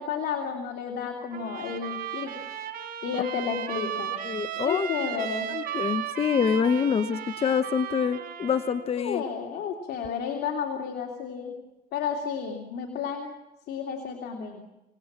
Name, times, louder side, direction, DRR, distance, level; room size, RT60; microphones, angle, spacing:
voice 1, 0.0-2.3 3.0-4.2 4.6-5.5 9.0-11.5 11.9-13.3 13.7-14.7, left 7 dB, 70° left, 3 dB, 3.1 m, -32 dB
Trumpet, 1.3-8.9, right 9 dB, 60° right, 4.1 m, -35 dB
voice 2, 4.2-4.9 5.5-9.2, left 6 dB, 35° left, 12 dB, 0.9 m, -26 dB
26.5 x 18.5 x 7.5 m, 0.97 s
cardioid pair, 110°, 17 cm